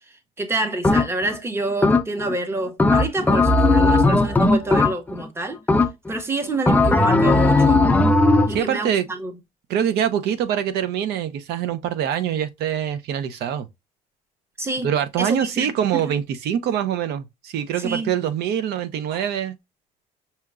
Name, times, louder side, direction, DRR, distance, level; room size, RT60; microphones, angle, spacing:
voice 1, 0.4-5.6 6.1-7.9 8.5-9.3 14.6-14.9 15.2-16.0 17.8-18.1 19.1-19.2, right 2 dB, 15° right, 0.8 m, -28 dB
sound 1, 0.8-1.4 1.8-2.4 2.8-5.3 5.7-6.2 6.7-8.6, left 2 dB, 10° left, 0.4 m, -17 dB
voice 2, 8.5-9.1 9.7-13.7 14.8-19.6, right 9 dB, 80° right, 0.6 m, -24 dB
5.6 x 2.9 x 2.4 m
cardioid pair, 125°, 16 cm